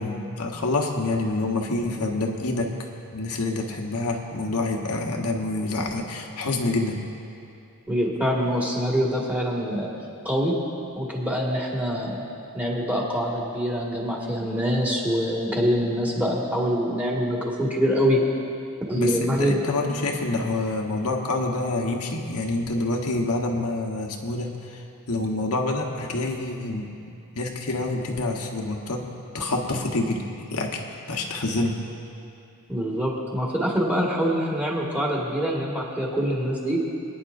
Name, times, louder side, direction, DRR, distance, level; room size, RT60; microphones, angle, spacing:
voice 1, 0.0-2.7 3.1-7.1 18.9-24.8 25.1-26.9 27.3-29.1 29.3-31.8, left 2 dB, 85° left, 1 dB, 1.3 m, -27 dB
voice 2, 7.9-9.9 10.2-10.5 11.0-12.2 12.5-18.2 18.9-19.6 32.7-36.8, equal, 5° right, -4 dB, 1.9 m, -25 dB
25.0 x 9.9 x 2.7 m, 2.7 s
head